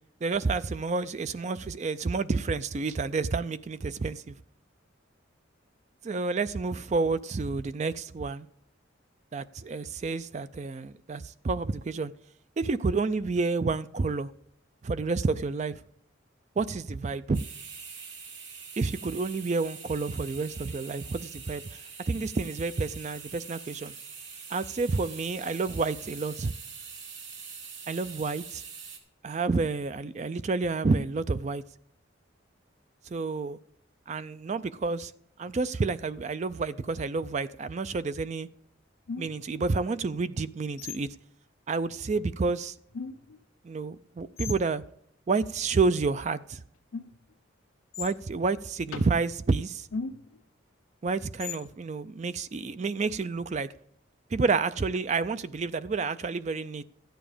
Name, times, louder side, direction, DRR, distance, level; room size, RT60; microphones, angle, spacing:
voice 1, 0.2-4.4 6.0-8.5 9.3-12.1 12.6-14.3 14.8-15.8 16.6-17.4 18.8-23.9 24.5-26.5 27.9-28.6 29.2-31.6 33.1-33.6 34.1-35.1 35.4-38.5 39.2-41.1 41.7-42.8 43.6-44.8 45.3-46.6 48.0-49.9 51.0-53.7 54.3-56.8, right 4 dB, 35° right, 0.3 m, -29 dB
sound 1, 17.3-29.0, right 6 dB, 70° right, 2.3 m, -44 dB
sound 2, 39.1-39.6 40.8-41.2 42.2-42.3 42.9-43.4 44.4-44.6 46.9-47.3 47.9-48.2 48.9-49.2 49.9-50.4 51.4-51.7, left 5 dB, 90° left, 0.7 m, -38 dB
13.5 x 9.2 x 5.0 m
head